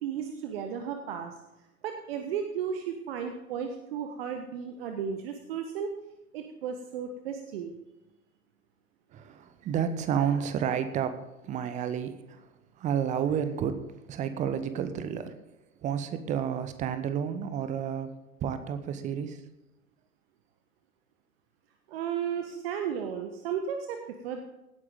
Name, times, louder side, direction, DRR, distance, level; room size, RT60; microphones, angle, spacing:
voice 1, 0.0-1.3 1.8-5.9 6.3-7.7 21.9-24.4, right 7 dB, 40° right, 5 dB, 1.4 m, -34 dB
voice 2, 9.1-13.8 14.1-15.4 15.8-18.1 18.4-19.4, right 8 dB, 15° right, 11 dB, 0.9 m, -31 dB
17.5 x 9.6 x 3.8 m, 0.96 s
figure-of-eight pair, 105°, 46 cm